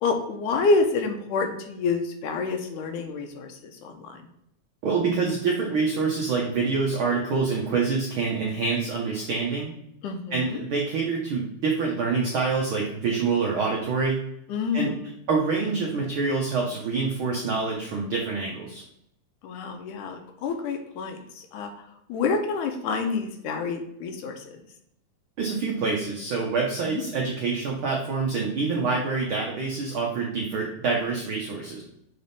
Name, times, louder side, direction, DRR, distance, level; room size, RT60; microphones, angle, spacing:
voice 1, 0.0-3.5 3.8-4.2 10.0-10.6 14.5-15.1 19.4-21.7 22.1-24.4 26.9-27.0 28.7-28.9, left 4 dB, 85° left, 5 dB, 2.2 m, -28 dB
voice 2, 4.8-9.7 10.3-14.2 14.7-14.9 15.3-18.8 25.4-31.8, right 4 dB, 90° right, -2 dB, 1.1 m, -26 dB
6.7 x 4.1 x 3.4 m, 0.75 s
omnidirectional pair, 3.6 m